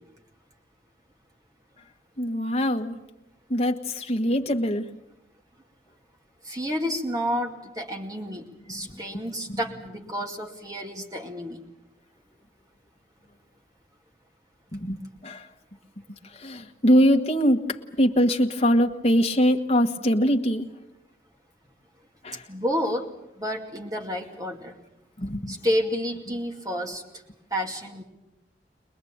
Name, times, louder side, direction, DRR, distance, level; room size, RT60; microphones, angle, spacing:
voice 1, 2.2-2.9 3.5-4.9 8.7-9.0 9.5-9.6 10.0-10.1 14.7-15.5 16.1-20.7 22.2-22.5 25.2-25.7 26.3-26.4, equal, 35° left, 3 dB, 1.5 m, -23 dB
voice 2, 6.4-11.6 22.5-23.1 23.4-24.8 25.5-27.0 27.5-28.0, equal, 20° right, 2 dB, 2.3 m, -30 dB
23.0 x 21.0 x 8.7 m, 0.89 s
head